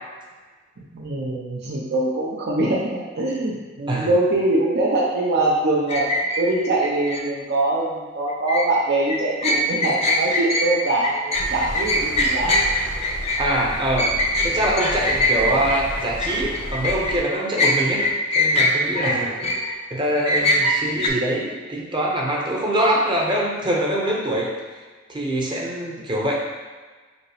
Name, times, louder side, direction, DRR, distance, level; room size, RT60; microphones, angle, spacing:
voice 1, 0.9-6.0 6.4-12.6 15.4-15.5 19.0-19.6, right 2 dB, 60° right, -5 dB, 0.7 m, -23 dB
sound 1, 5.9-7.2 8.3-8.7 9.1-17.2 17.6-19.8 20.2-21.1, left 1 dB, 35° left, 0.5 m, -22 dB
sound 2, 11.3-17.2, equal, 60° left, 1.0 m, -33 dB
voice 2, 13.4-14.1 14.4-18.0 18.3-19.3 19.9-24.5 25.1-26.4, right 1 dB, 25° right, -3 dB, 0.7 m, -23 dB
5.2 x 2.0 x 4.8 m, 1.4 s
head